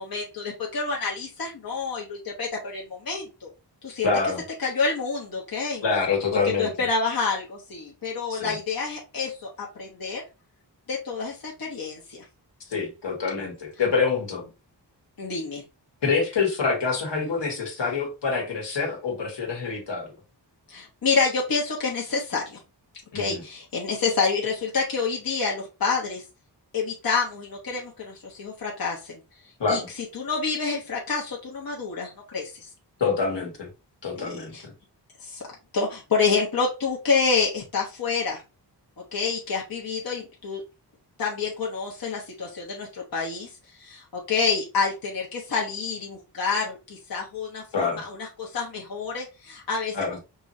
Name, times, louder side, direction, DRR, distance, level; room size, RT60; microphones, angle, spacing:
voice 1, 0.0-3.5 3.8-4.1 4.6-5.8 6.6-10.2 10.9-12.2 15.2-15.6 20.7-22.6 23.1-26.2 26.7-29.2 29.7-29.8 30.1-32.7 34.1-34.6 35.2-35.4 35.7-38.4 39.1-40.6 41.2-43.5 43.8-50.0, left 4 dB, 55° left, -3 dB, 1.1 m, -28 dB
voice 2, 4.0-4.4 5.8-6.7 8.3-8.6 12.7-14.4 16.0-20.1 23.1-23.4 29.6-29.9 33.0-33.7 34.0-34.7 47.7-48.0 49.9-50.2, left 4 dB, 75° left, 1 dB, 1.6 m, -26 dB
5.3 x 3.1 x 2.7 m, 0.28 s
wide cardioid pair, 110°, 43 cm